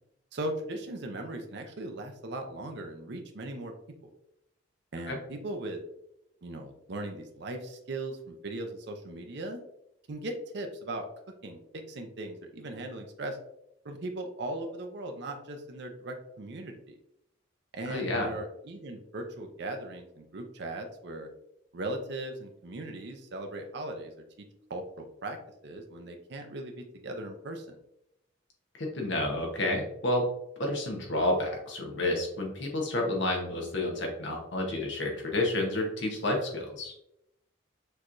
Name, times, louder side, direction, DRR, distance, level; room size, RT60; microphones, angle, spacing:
voice 1, 0.3-3.7 4.0-4.1 4.9-5.8 6.4-9.6 10.1-11.1 11.4-13.4 13.8-17.0 17.7-21.3 21.7-25.4 25.6-27.8, right 1 dB, 60° right, 4 dB, 0.6 m, -38 dB
voice 2, 17.9-18.3 28.7-30.3 30.6-36.9, left 1 dB, 65° left, 0 dB, 1.0 m, -30 dB
6.5 x 3.0 x 2.5 m, 0.80 s
head